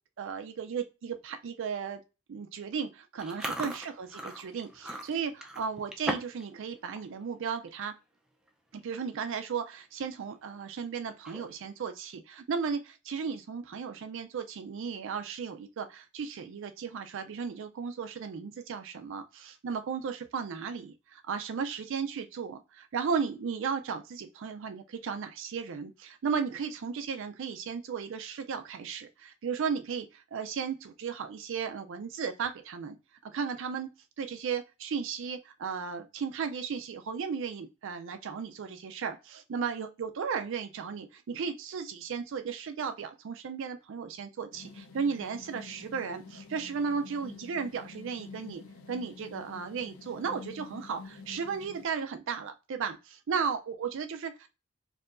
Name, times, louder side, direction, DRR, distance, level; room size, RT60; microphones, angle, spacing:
voice 1, 0.2-2.0 2.3-7.9 8.7-33.0 33.2-33.9 34.2-48.6 48.9-54.5, right 6 dB, 65° right, 0.4 m, -35 dB
Chewing mastication, 3.2-6.4 6.7-7.1 7.5-7.7 8.5-8.6 8.8-9.1 9.6-9.7 11.1-11.7, right 1 dB, 5° right, 0.5 m, -38 dB
sound 1, 44.5-51.8, left 4 dB, 75° left, 0.5 m, -48 dB
4.5 x 2.7 x 2.5 m
head